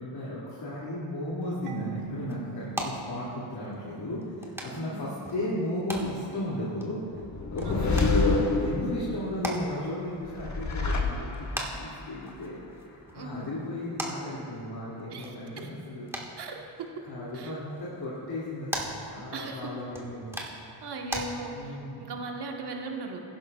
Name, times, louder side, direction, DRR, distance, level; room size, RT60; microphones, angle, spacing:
voice 1, 0.0-7.0 7.5-16.5 17.1-20.4 21.5-22.1, left 1 dB, 55° left, -8 dB, 2.6 m, -35 dB
sound 1, 1.4-21.2, equal, 5° right, 1.7 m, -41 dB
Marimba xylophone / Wood, 1.7-4.4, right 9 dB, 80° right, 0.7 m, -42 dB
voice 2, 4.7-5.1 7.6-7.9 13.1-13.5 15.1-15.7 16.4-16.5 17.3-17.5 19.3-19.7 20.8-23.2, right 3 dB, 60° right, 1 dB, 1.5 m, -38 dB
sound 2, 7.2-9.2 10.2-11.7, left 3 dB, 40° left, 1.3 m, -27 dB
16.0 x 11.0 x 2.4 m, 2.7 s
cardioid pair, 65°, 45 cm